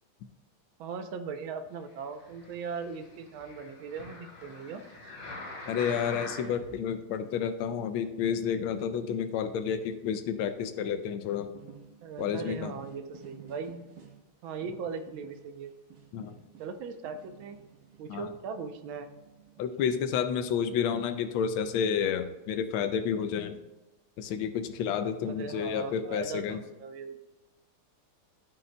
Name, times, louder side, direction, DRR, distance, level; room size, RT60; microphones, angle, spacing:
voice 1, 0.8-4.8 12.0-13.8 14.4-15.7 16.6-17.6 18.0-19.1 25.2-27.3, right 5 dB, 75° right, 8 dB, 1.4 m, -39 dB
sound 1, 2.1-6.7 7.3-7.4, left 2 dB, 55° left, 2.4 m, -44 dB
voice 2, 5.7-11.5 12.2-12.8 16.1-16.4 18.1-18.3 19.6-23.6 24.2-26.6, left 7 dB, 80° left, 9 dB, 1.4 m, -30 dB
sound 2, 11.5-14.3 14.6-21.0, right 7 dB, 55° right, 1.1 m, -53 dB
12.5 x 5.4 x 2.2 m, 1.1 s
omnidirectional pair, 2.4 m